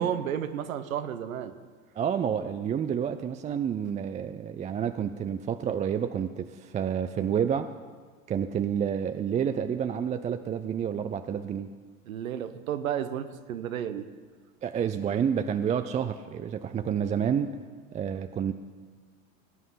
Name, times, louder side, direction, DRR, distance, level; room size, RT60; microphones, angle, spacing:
voice 1, 0.0-1.5 12.1-14.1, right 9 dB, 80° right, 10 dB, 1.0 m, -32 dB
voice 2, 2.0-7.7 8.3-11.7 14.6-17.5 17.9-18.5, right 8 dB, 20° right, 9 dB, 0.4 m, -29 dB
19.0 x 9.3 x 5.7 m, 1.5 s
hypercardioid pair, 90°, 41 cm